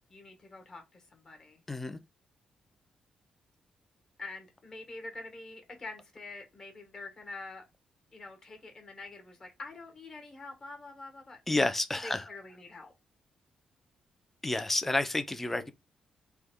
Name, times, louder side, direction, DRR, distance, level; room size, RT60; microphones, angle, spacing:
voice 1, 0.1-1.6 4.2-7.6 8.1-11.4 12.0-12.9, left 3 dB, 30° left, 1.0 m, -46 dB
voice 2, 1.7-2.0 11.5-12.2 14.4-15.7, left 2 dB, 10° left, 0.3 m, -30 dB
3.3 x 2.1 x 3.4 m
wide cardioid pair, 160°, 2 cm